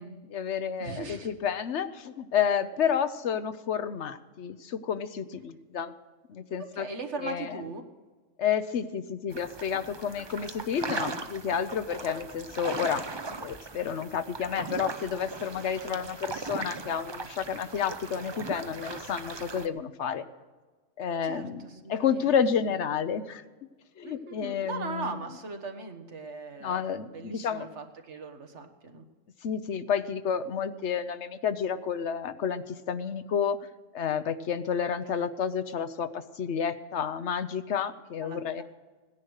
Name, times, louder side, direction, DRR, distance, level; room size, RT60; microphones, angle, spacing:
voice 1, 0.3-5.9 6.3-6.9 7.2-7.6 8.4-13.0 13.4-20.2 21.0-23.4 24.0-25.2 26.6-27.7 29.4-33.7 33.9-38.6, left 7 dB, 65° left, 12 dB, 1.0 m, -30 dB
voice 2, 0.8-1.3 6.7-7.8 15.9-16.1 16.3-16.4 21.2-22.3 24.0-29.1 35.0-35.3 38.2-38.6, right 4 dB, 65° right, 6 dB, 1.7 m, -40 dB
sound 1, 9.3-19.7, right 3 dB, 30° right, 0.6 m, -38 dB
17.5 x 10.5 x 6.4 m, 1.3 s
omnidirectional pair, 1.3 m